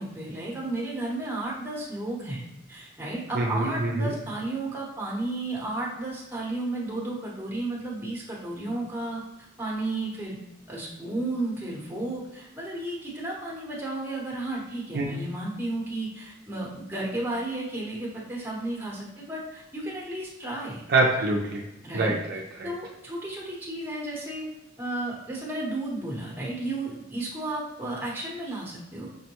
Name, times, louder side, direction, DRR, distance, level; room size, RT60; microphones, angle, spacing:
voice 1, 0.0-9.2 9.6-10.3 10.7-20.8 21.8-22.1 22.6-24.5 24.8-29.1, right 2 dB, 10° right, -5 dB, 0.9 m, -33 dB
voice 2, 3.3-4.1 14.9-15.1 20.9-21.6 21.9-22.7, right 2 dB, 55° right, -2 dB, 0.5 m, -25 dB
5.3 x 2.1 x 2.9 m, 0.93 s
head